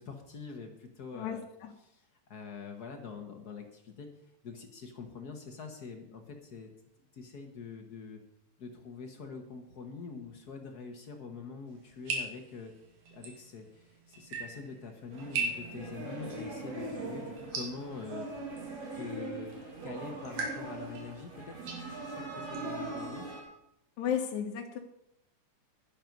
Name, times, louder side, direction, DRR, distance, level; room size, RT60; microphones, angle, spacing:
voice 1, 0.0-1.4 1.8-4.1 4.4-6.7 7.1-8.2 8.6-12.7 13.1-18.3 18.9-19.5 19.8-23.3, left 5 dB, 60° left, 4 dB, 1.0 m, -44 dB
voice 2, 1.1-1.7 24.0-24.8, left 8 dB, 75° left, 2 dB, 2.2 m, -34 dB
sound 1, 11.7-23.3, right 3 dB, 75° right, 3.5 m, -42 dB
sound 2, 15.1-23.4, right 2 dB, 60° right, 3.7 m, -41 dB
11.0 x 10.5 x 5.2 m, 0.78 s
omnidirectional pair, 3.4 m